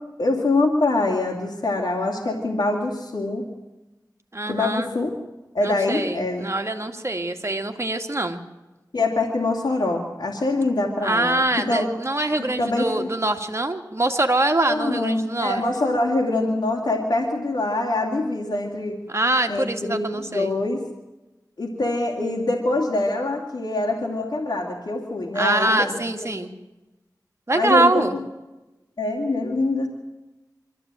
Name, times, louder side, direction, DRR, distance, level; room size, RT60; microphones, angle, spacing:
voice 1, 0.2-3.5 4.5-5.1 5.5-6.4 8.9-11.9 12.6-13.1 14.7-19.0 19.5-20.8 21.6-26.0 27.5-28.0 29.0-29.9, left 2 dB, 85° left, -2 dB, 2.9 m, -24 dB
voice 2, 4.3-4.9 5.6-8.4 11.0-15.6 19.1-20.5 25.3-26.5 27.5-28.1, right 2 dB, 40° right, 5 dB, 2.3 m, -24 dB
24.0 x 14.5 x 9.1 m, 1.0 s
wide cardioid pair, 55°, 7 cm